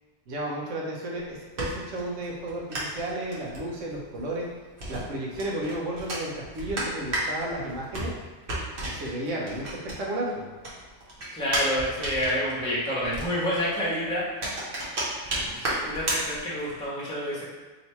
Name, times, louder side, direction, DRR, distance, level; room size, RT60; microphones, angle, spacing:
voice 1, 0.3-4.5 4.9-8.1 8.8-10.5, right 1 dB, 75° right, -3 dB, 1.2 m, -33 dB
sound 1, 1.1-10.3 10.6-16.9, right 1 dB, 50° right, 1.0 m, -34 dB
voice 2, 11.3-14.2 15.4-17.4, equal, 5° left, -7 dB, 0.8 m, -28 dB
3.1 x 2.8 x 4.3 m, 1.3 s
omnidirectional pair, 1.3 m